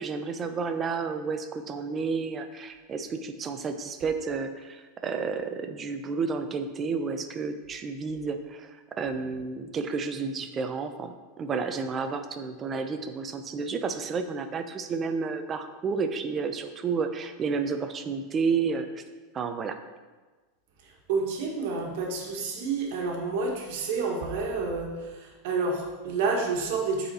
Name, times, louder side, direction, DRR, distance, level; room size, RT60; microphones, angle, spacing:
voice 1, 0.0-8.7 9.0-19.0 19.3-19.8, right 5 dB, 20° right, 7 dB, 0.5 m, -31 dB
voice 2, 21.1-27.1, right 4 dB, 65° right, 0 dB, 1.4 m, -29 dB
7.9 x 4.2 x 4.2 m, 1.3 s
supercardioid pair, 150°, 0 cm